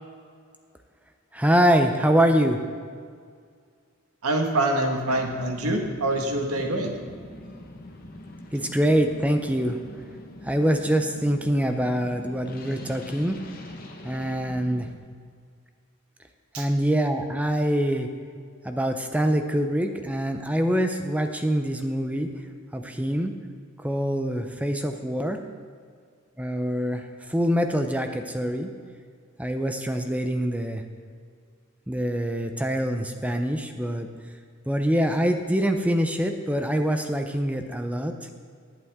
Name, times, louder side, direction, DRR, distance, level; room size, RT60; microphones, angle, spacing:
voice 1, 1.3-2.6 8.5-9.8 10.4-13.4 14.0-14.9 16.6-18.1 18.6-22.3 22.7-23.3 23.8-25.4 26.4-28.7 29.4-30.8 31.9-34.1 34.7-38.1, equal, 5° right, 6 dB, 0.6 m, -24 dB
voice 2, 4.2-7.0 16.5-16.7, right 1 dB, 90° right, 2 dB, 1.7 m, -25 dB
sound 1, 5.1-14.9, left 1 dB, 40° left, 1.3 m, -43 dB
19.0 x 9.0 x 3.7 m, 2.1 s
head